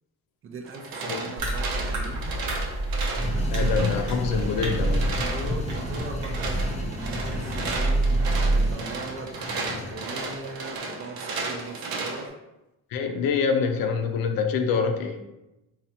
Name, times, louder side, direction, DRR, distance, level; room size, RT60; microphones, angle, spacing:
voice 1, 0.4-2.3 3.4-3.7 5.2-8.1 8.5-9.3 9.6-12.4, right 3 dB, 40° right, 3 dB, 0.5 m, -39 dB
sound 1, 0.6-12.3, right 3 dB, 90° right, 0.7 m, -35 dB
sound 2, 1.4-8.7, right 2 dB, 60° right, 0.8 m, -27 dB
sound 3, 3.1-10.4, left 2 dB, 20° left, 0.3 m, -35 dB
voice 2, 3.5-5.1 12.9-15.2, left 5 dB, 80° left, 6 dB, 0.5 m, -25 dB
4.1 x 2.4 x 2.8 m, 0.94 s
cardioid pair, 155°, 34 cm